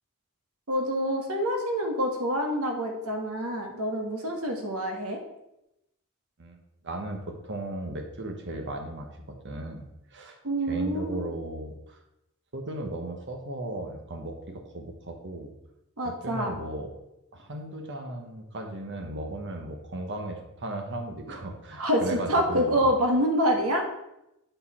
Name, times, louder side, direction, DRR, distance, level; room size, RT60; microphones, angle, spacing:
voice 1, 0.7-5.2 10.4-11.2 16.0-16.5 21.8-23.9, equal, 75° right, 2 dB, 1.5 m, -26 dB
voice 2, 6.8-9.8 10.1-10.4 10.7-12.0 12.5-15.5 16.0-16.9 17.3-22.9, right 1 dB, 55° right, 3 dB, 1.1 m, -36 dB
7.8 x 4.6 x 4.2 m, 0.86 s
head